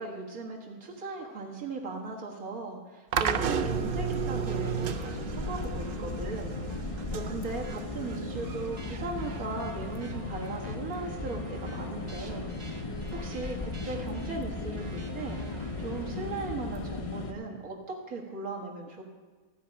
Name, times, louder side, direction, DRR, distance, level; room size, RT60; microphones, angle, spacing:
voice 1, 0.0-6.5 6.8-19.0, right 3 dB, 80° right, -1 dB, 2.1 m, -38 dB
sound 1, 3.1-10.2, right 8 dB, 65° right, 0.5 m, -34 dB
sound 2, 3.3-17.3, left 3 dB, 35° left, 0.6 m, -37 dB
sound 3, 4.5-16.5, right 3 dB, 35° right, 0.8 m, -46 dB
14.5 x 5.1 x 8.6 m, 1.3 s
omnidirectional pair, 1.5 m